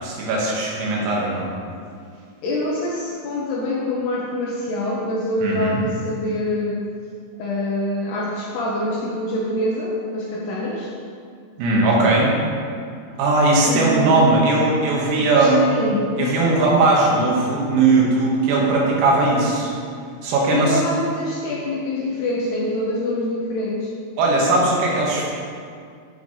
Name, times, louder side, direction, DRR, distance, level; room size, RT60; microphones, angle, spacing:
voice 1, 0.0-1.5 5.4-5.8 11.6-12.3 13.2-15.6 16.2-19.7 20.2-20.8 24.2-25.3, right 2 dB, 85° right, -4 dB, 4.4 m, -18 dB
voice 2, 2.4-6.8 7.4-10.9 13.7-14.2 15.2-16.4 20.5-23.9, left 1 dB, 75° left, -4 dB, 2.5 m, -25 dB
13.5 x 6.9 x 3.3 m, 2.3 s
omnidirectional pair, 5.9 m